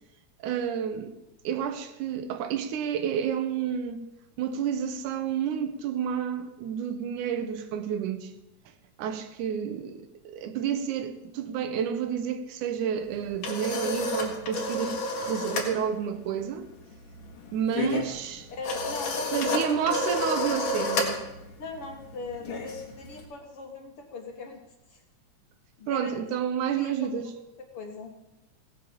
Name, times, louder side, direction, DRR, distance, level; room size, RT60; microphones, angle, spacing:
voice 1, 0.4-1.1 1.4-4.1 4.4-8.3 9.0-16.7 17.5-18.5 19.3-21.2 25.9-27.3, right 8 dB, 85° right, 2.4 m, -30 dB
sound 1, 13.0-15.7 16.0-16.3 16.6-23.2, left 2 dB, 90° left, 3.4 m, -31 dB
voice 2, 18.5-19.9 20.2-20.6 21.6-24.6 24.9-25.0 25.8-26.2 26.7-27.3 27.7-28.1, left 3 dB, 55° left, 2.0 m, -39 dB
16.5 x 7.4 x 7.2 m
omnidirectional pair, 3.5 m